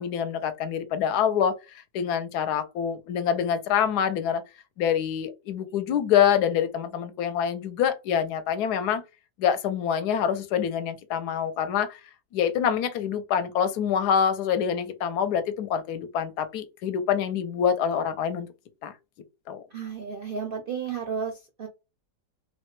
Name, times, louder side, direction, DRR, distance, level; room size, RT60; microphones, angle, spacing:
voice 1, 0.0-1.6 1.9-4.4 4.8-9.0 9.4-12.0 12.3-18.5 18.8-18.9 19.5-19.6, left 8 dB, 75° left, 1.1 m, -26 dB
voice 2, 19.7-21.7, right 6 dB, 65° right, 0.5 m, -33 dB
3.0 x 2.1 x 3.0 m
omnidirectional pair, 1.8 m